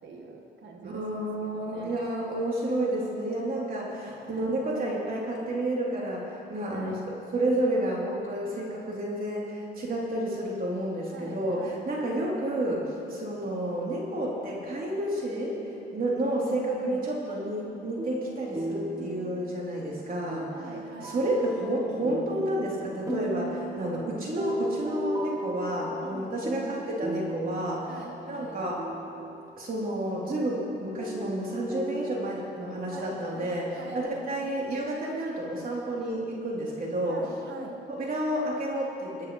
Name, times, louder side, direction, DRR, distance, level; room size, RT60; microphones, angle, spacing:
voice 1, 0.0-2.1 3.9-4.5 6.7-7.0 11.1-12.3 16.3-17.1 20.5-21.5 26.0-26.8 27.9-28.6 32.9-34.5 37.0-37.8, right 2 dB, 65° right, 2 dB, 1.8 m, -44 dB
voice 2, 0.8-7.0 7.3-15.6 15.9-20.5 21.0-27.9 28.3-28.8 29.6-37.2 37.9-39.3, right 1 dB, 45° right, -5 dB, 3.6 m, -30 dB
sound 1, 17.6-29.6 30.5-30.6 31.0-34.0, right 1 dB, 15° right, 1.3 m, -37 dB
23.5 x 9.5 x 3.3 m, 2.7 s
cardioid pair, 90°, 20 cm